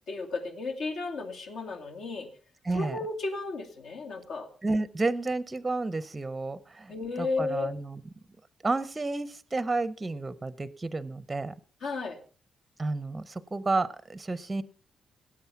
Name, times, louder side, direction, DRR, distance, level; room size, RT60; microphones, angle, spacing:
voice 1, 0.1-2.3 2.7-4.5 6.9-7.7 11.8-12.2, left 3 dB, 70° left, 3 dB, 2.6 m, -33 dB
voice 2, 2.7-3.0 4.6-8.0 8.6-11.5 12.8-14.6, right 3 dB, 15° right, 17 dB, 0.6 m, -31 dB
18.5 x 8.7 x 5.7 m, 0.41 s
wide cardioid pair, 165°, 0 cm